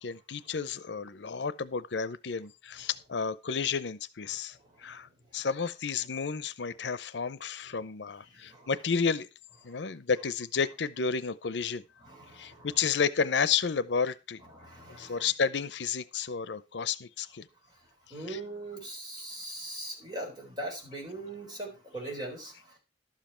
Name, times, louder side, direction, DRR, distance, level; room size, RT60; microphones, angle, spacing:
voice 1, 0.0-9.3 9.6-11.8 12.3-14.4 14.9-17.5 18.3-18.4, left 6 dB, 80° left, 16 dB, 0.6 m, -31 dB
voice 2, 4.5-5.5 7.7-7.8 8.3-8.7 9.7-9.9 12.0-12.8 14.4-15.3 17.7-22.8, right 1 dB, 25° right, 0 dB, 4.0 m, -42 dB
12.0 x 7.5 x 4.4 m, 0.27 s
head